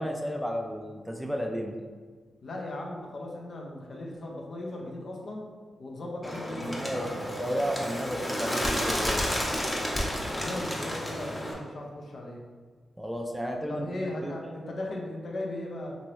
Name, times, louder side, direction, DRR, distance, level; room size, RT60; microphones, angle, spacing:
voice 1, 0.0-1.8 6.5-9.4 13.0-13.9 14.2-14.4, equal, 5° right, 2 dB, 0.4 m, -33 dB
voice 2, 2.4-5.4 5.8-7.2 10.3-12.4 13.7-16.0, left 1 dB, 65° left, -1 dB, 0.6 m, -37 dB
Bird, 6.2-11.5, equal, 20° left, 0.8 m, -31 dB
2.9 x 2.6 x 3.1 m, 1.5 s
cardioid pair, 55°, 0 cm